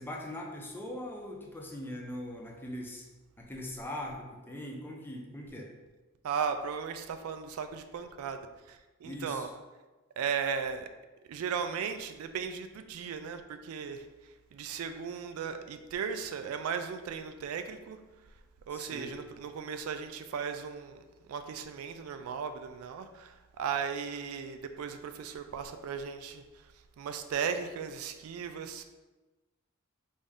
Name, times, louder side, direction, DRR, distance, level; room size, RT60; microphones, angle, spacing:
voice 1, 0.0-3.1 3.4-5.7 9.0-9.5 18.7-19.1, left 1 dB, 10° left, 0 dB, 0.5 m, -41 dB
voice 2, 6.2-8.4 8.7-9.5 10.2-10.9 11.3-14.0 14.5-18.0 18.7-26.4 27.0-28.8, right 6 dB, 75° right, 9 dB, 0.3 m, -36 dB
3.4 x 2.6 x 3.4 m, 1.2 s
head